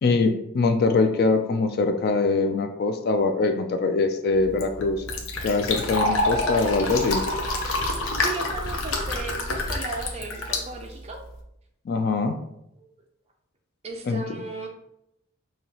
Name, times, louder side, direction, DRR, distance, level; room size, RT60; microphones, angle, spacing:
voice 1, 0.0-5.0 5.4-7.2 11.9-12.4 14.1-14.2, left 3 dB, 45° left, 7 dB, 0.3 m, -23 dB
Fill (with liquid), 4.3-11.4, left 2 dB, 60° left, 0.7 m, -28 dB
voice 2, 8.1-11.2 12.8-12.9 13.8-14.7, right 3 dB, 30° right, 2 dB, 0.5 m, -36 dB
5.4 x 2.8 x 2.9 m, 0.81 s
head